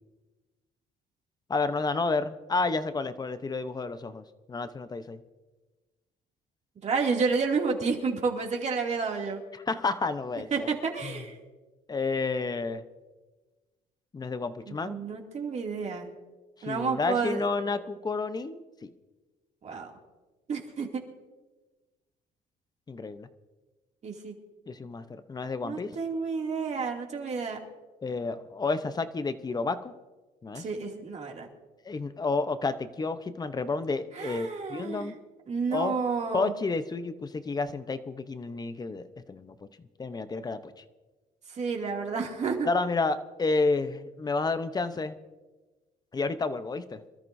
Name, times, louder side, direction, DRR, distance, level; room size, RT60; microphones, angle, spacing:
voice 1, 1.5-5.2 9.5-10.7 11.0-11.2 11.9-12.8 14.1-15.0 16.6-18.9 22.9-23.3 24.7-25.9 28.0-29.9 30.4-30.6 31.8-35.2 35.7-35.9 36.3-39.6 40.0-40.6 42.7-45.2 46.1-47.0, left 3 dB, 25° left, 11 dB, 0.8 m, -30 dB
voice 2, 6.8-9.4 10.5-11.4 14.7-16.1 16.6-17.4 19.6-19.9 20.5-21.0 24.0-24.3 25.6-27.6 30.5-31.5 34.1-35.1 35.5-36.5 41.6-42.7, right 5 dB, 40° right, 1 dB, 2.6 m, -30 dB
26.0 x 13.5 x 2.7 m, 1.2 s
cardioid pair, 110°, 17 cm